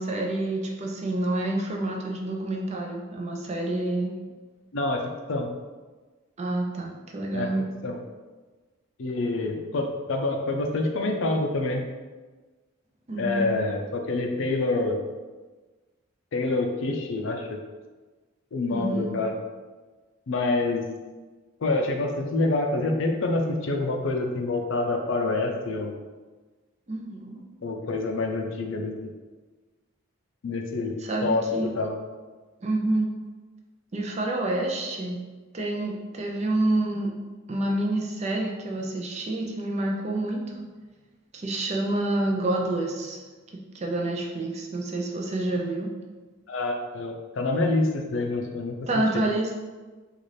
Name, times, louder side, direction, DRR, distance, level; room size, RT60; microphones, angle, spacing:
voice 1, 0.0-4.2 6.4-7.7 13.1-13.5 18.7-19.1 26.9-27.4 31.0-31.7 32.6-33.1 33.9-35.2 35.5-37.1 37.5-40.7 41.3-43.2 43.7-45.9 48.9-49.5, right 2 dB, 30° right, 0 dB, 0.4 m, -28 dB
voice 2, 9.0-11.8 13.2-15.0 16.3-17.6 18.5-19.4 20.3-20.9 21.6-26.0 27.6-29.1 30.4-30.9 31.2-32.0 46.5-48.8, left 2 dB, 70° left, 3 dB, 0.5 m, -27 dB
4.0 x 2.5 x 3.2 m, 1.3 s
head